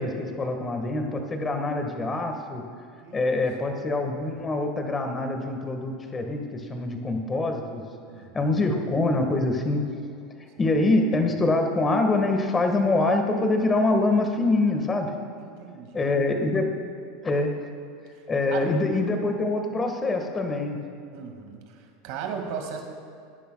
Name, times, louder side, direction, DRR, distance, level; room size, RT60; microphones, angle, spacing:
voice 1, 0.0-2.6 3.1-7.8 8.3-9.8 10.4-15.1 15.9-16.7 17.2-17.5 18.3-20.8, left 2 dB, 20° left, 4 dB, 1.6 m, -25 dB
voice 2, 3.0-3.4 8.1-8.3 15.4-16.1 18.5-19.0 21.1-22.8, right 7 dB, 65° right, 3 dB, 2.0 m, -37 dB
20.5 x 10.0 x 2.3 m, 2.4 s
supercardioid pair, 110°, 0 cm